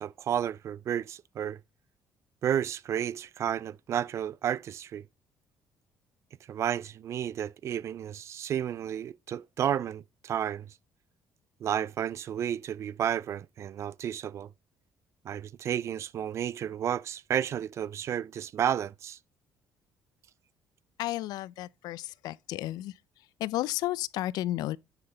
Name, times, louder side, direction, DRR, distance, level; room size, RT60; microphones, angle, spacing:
voice 1, 0.0-1.6 2.4-5.0 6.5-10.7 11.6-14.5 15.2-19.2, right 9 dB, 45° right, 0.4 m, -32 dB
voice 2, 21.0-22.9 23.4-24.8, left 15 dB, 80° left, 0.5 m, -32 dB
9.9 x 5.9 x 3.9 m
cardioid pair, 140°, 7 cm